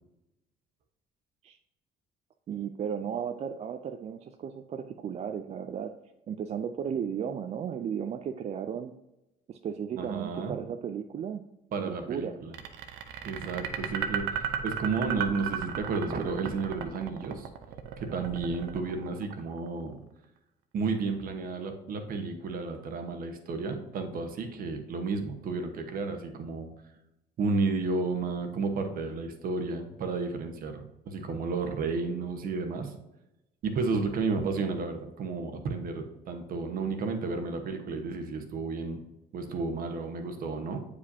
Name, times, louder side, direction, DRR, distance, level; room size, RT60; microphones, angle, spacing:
voice 1, 2.5-5.9 6.3-8.9 9.5-11.4 11.8-12.4, right 8 dB, 40° right, 6 dB, 0.4 m, -35 dB
voice 2, 10.0-10.5 11.7-12.5 13.2-17.5 18.0-20.0 20.7-26.7 27.4-32.9 33.6-39.0 39.3-40.8, right 4 dB, 60° right, 5 dB, 1.1 m, -32 dB
sound 1, 12.5-19.7, right 8 dB, 85° right, 0.7 m, -34 dB
8.2 x 4.9 x 2.7 m, 0.92 s
cardioid pair, 110°, 17 cm